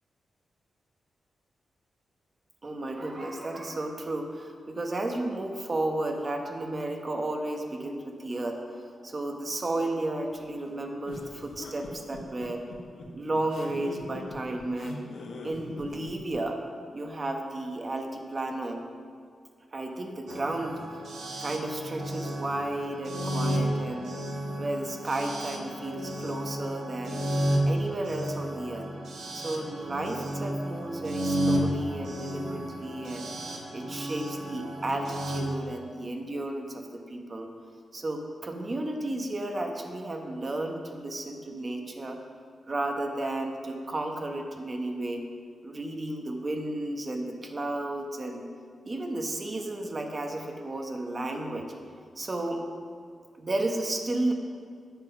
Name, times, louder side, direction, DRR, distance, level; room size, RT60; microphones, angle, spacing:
voice 1, 2.6-12.6 13.1-15.1 15.4-16.6 16.9-18.8 19.7-20.8 21.4-24.1 24.6-27.2 27.7-28.9 29.3-33.3 33.7-37.5 37.9-42.2 42.7-45.2 45.6-48.4 48.8-51.7 52.2-52.7 53.4-54.3, right 2 dB, 25° right, 3 dB, 1.0 m, -33 dB
sound 1, 11.0-16.4, left 2 dB, 85° left, 1.5 m, -42 dB
sound 2, 20.3-35.4, equal, 75° right, 1.8 m, -32 dB
10.5 x 7.8 x 5.9 m, 2.2 s
wide cardioid pair, 170°, 0 cm